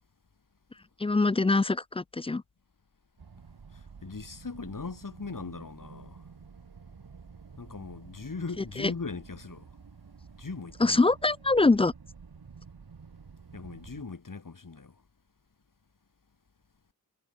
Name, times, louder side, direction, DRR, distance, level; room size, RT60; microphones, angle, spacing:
voice 1, 1.0-2.4 8.8-8.9 10.8-11.9, left 3 dB, 15° left, 0.3 m, -23 dB
sound 1, 3.2-14.0, right 5 dB, 85° right, 4.6 m, -50 dB
voice 2, 4.0-6.2 7.6-9.7 10.4-11.0 13.5-14.9, left 4 dB, 60° left, 7.2 m, -39 dB
wide cardioid pair, 95°, 36 cm